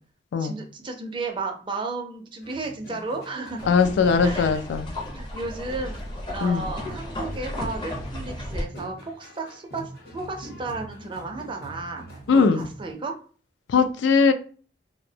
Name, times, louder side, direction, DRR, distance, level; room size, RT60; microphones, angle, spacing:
voice 1, 0.4-3.6 4.2-4.6 5.1-6.0 6.3-9.8 10.1-13.1, right 3 dB, 30° right, 0.4 m, -33 dB
sound 1, 2.4-12.9, right 1 dB, 55° left, 0.9 m, -43 dB
sound 2, 3.6-8.6, left 1 dB, 25° left, 0.5 m, -34 dB
voice 2, 3.7-4.9 6.4-6.6 12.3-12.6 13.7-14.3, left 5 dB, 80° left, 0.3 m, -20 dB
2.5 x 2.0 x 2.7 m
head